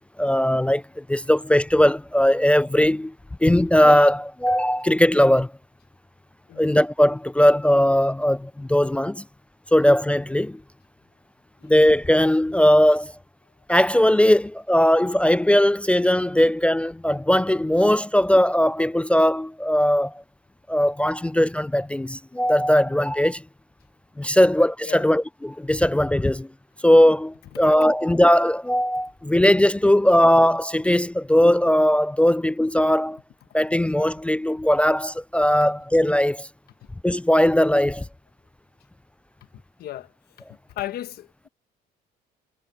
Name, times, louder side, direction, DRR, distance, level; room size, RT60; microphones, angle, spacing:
voice 1, 0.2-0.8 1.1-3.1 3.4-5.5 6.6-9.2 9.7-10.6 11.6-13.1 13.7-20.1 20.7-23.4 24.2-26.5 26.8-33.2 33.5-36.5 37.0-38.0, left 1 dB, 5° left, 0.3 m, -19 dB
voice 2, 39.5-40.1 40.7-41.5, left 13 dB, 65° left, 1.2 m, -36 dB
cardioid pair, 110°, 17 cm